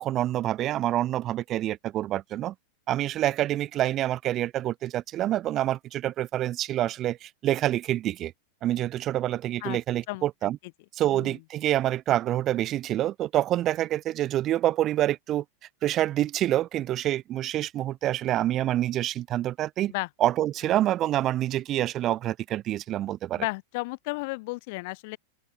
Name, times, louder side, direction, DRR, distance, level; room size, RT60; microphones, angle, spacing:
voice 1, 0.0-2.5 2.9-8.3 8.6-10.6 11.0-15.4 15.8-19.9 20.2-23.4, right 13 dB, 30° right, 1.0 m, -27 dB
voice 2, 10.1-10.5 11.1-11.4 19.9-20.1 23.4-25.2, left 26 dB, 50° left, 1.6 m, -33 dB
open air
figure-of-eight pair, 90°, 0 cm